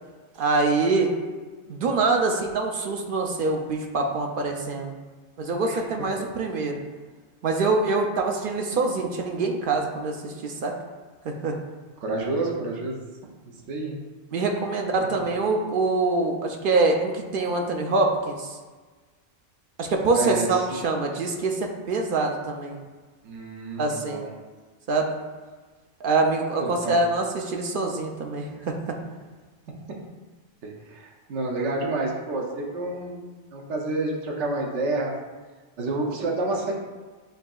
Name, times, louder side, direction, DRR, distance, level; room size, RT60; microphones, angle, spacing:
voice 1, 0.4-1.1 1.7-4.9 5.4-6.8 7.4-10.8 11.2-11.6 14.3-18.5 19.8-22.8 23.8-24.2 24.9-25.2 26.0-29.0, right 3 dB, 60° right, 2 dB, 0.6 m, -25 dB
voice 2, 12.0-13.0 13.7-14.0 15.1-15.2 20.1-20.7 23.2-24.3 26.6-27.0 30.6-33.2 33.5-35.1 35.8-36.7, right 2 dB, 85° right, -1 dB, 1.0 m, -29 dB
7.8 x 2.7 x 2.3 m, 1.3 s
omnidirectional pair, 1.2 m